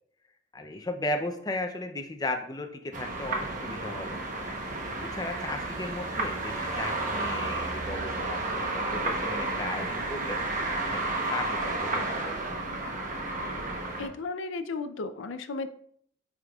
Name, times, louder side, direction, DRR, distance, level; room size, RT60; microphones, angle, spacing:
voice 1, 0.5-4.2 5.0-8.4 8.7-10.5 10.8-12.9, left 2 dB, 20° left, 5 dB, 0.5 m, -36 dB
sound 1, 2.9-14.1, right 2 dB, 45° right, 0.9 m, -32 dB
voice 2, 14.0-15.7, left 3 dB, 80° left, 9 dB, 0.5 m, -34 dB
8.7 x 5.0 x 2.3 m, 0.65 s
head